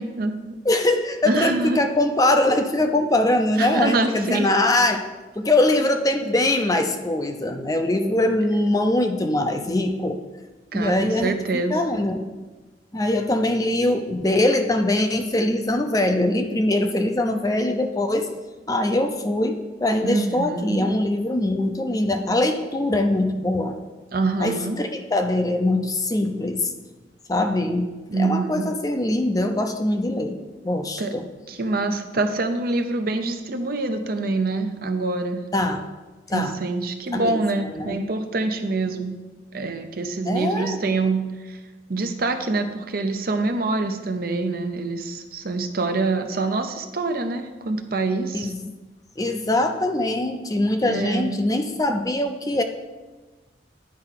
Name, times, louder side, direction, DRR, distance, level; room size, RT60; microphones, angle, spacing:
voice 1, 0.0-0.6 1.2-1.8 3.6-4.5 10.7-11.8 20.0-20.9 24.1-24.8 28.1-28.7 31.0-31.1 31.5-35.4 36.3-39.1 39.5-41.2 41.5-41.6 41.9-48.5 50.8-51.4, right 3 dB, 55° right, 6 dB, 0.7 m, -25 dB
voice 2, 0.6-5.0 5.4-10.2 10.7-11.4 11.7-12.2 12.9-18.3 18.7-23.8 24.4-26.7 27.3-30.4 30.6-31.3 35.5-35.8 36.3-36.6 37.1-38.0 40.3-40.8 48.3-48.6 49.2-52.6, left 1 dB, 20° left, 6 dB, 0.6 m, -22 dB
9.7 x 4.8 x 5.8 m, 1.2 s
head